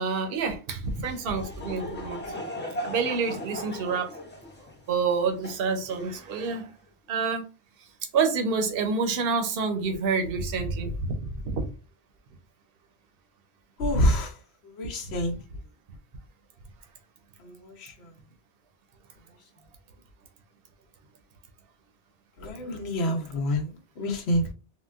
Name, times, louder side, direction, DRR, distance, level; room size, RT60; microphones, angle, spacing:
voice 1, 0.0-2.2 2.8-4.1 4.9-6.7 7.1-7.5 8.1-11.6, right 5 dB, 60° right, 0.8 m, -28 dB
Laughter / Crowd, 0.8-6.6, left 1 dB, 15° left, 0.5 m, -38 dB
voice 2, 13.8-14.3 14.8-15.3 17.4-17.9 22.4-23.7 24.0-24.5, equal, 70° left, 1.0 m, -27 dB
3.7 x 2.2 x 2.3 m
omnidirectional pair, 1.2 m